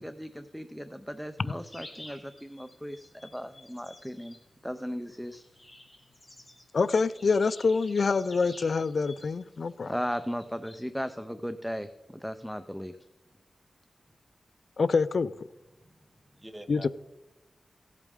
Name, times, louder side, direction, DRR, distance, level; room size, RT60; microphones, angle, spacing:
voice 1, 0.0-4.4 4.6-5.4 9.9-13.0, equal, ahead, 10 dB, 0.5 m, -36 dB
sound 1, 1.6-10.8, left 1 dB, 15° left, 2.1 m, -52 dB
voice 2, 6.7-9.9 14.8-15.3 16.7-16.9, left 4 dB, 60° left, 15 dB, 0.3 m, -26 dB
voice 3, 15.7-16.9, right 1 dB, 15° right, 7 dB, 1.0 m, -47 dB
17.0 x 8.2 x 3.6 m, 0.99 s
wide cardioid pair, 135°, 0 cm